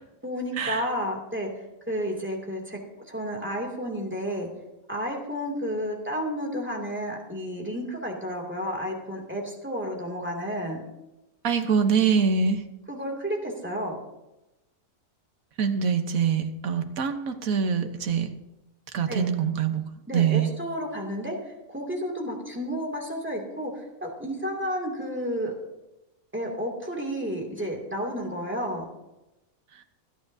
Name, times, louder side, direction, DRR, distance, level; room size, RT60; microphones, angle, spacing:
voice 1, 0.2-2.8 3.1-4.5 4.9-10.8 12.9-14.0 19.1-19.3 20.1-25.5 26.3-28.9, equal, 10° right, -1 dB, 2.4 m, -31 dB
voice 2, 11.4-12.6 15.6-18.3 18.9-19.8 20.1-20.5, right 6 dB, 85° right, 7 dB, 1.5 m, -24 dB
26.0 x 9.4 x 2.7 m, 0.97 s
omnidirectional pair, 1.4 m